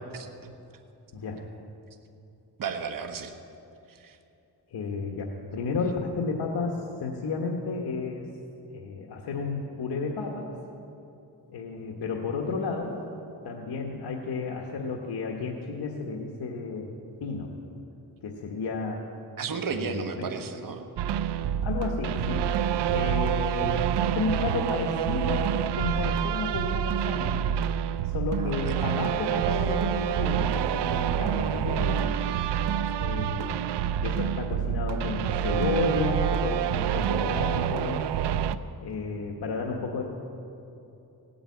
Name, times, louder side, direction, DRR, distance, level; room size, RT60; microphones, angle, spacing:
voice 1, 0.1-0.5 2.6-3.3 3.9-4.2 19.4-20.9 28.4-28.9, right 5 dB, 50° right, 5 dB, 1.2 m, -34 dB
voice 2, 1.1-1.5 4.7-8.3 8.7-10.5 11.5-13.0 13.4-16.9 17.2-17.5 18.2-19.1 19.7-20.3 21.6-27.4 28.0-32.1 33.0-33.6 34.0-38.0 38.8-40.0, left 4 dB, 70° left, -1 dB, 1.5 m, -32 dB
sound 1, 21.0-38.6, right 9 dB, 80° right, 0.6 m, -27 dB
17.5 x 8.7 x 8.6 m, 2.8 s
cardioid pair, 95°, 41 cm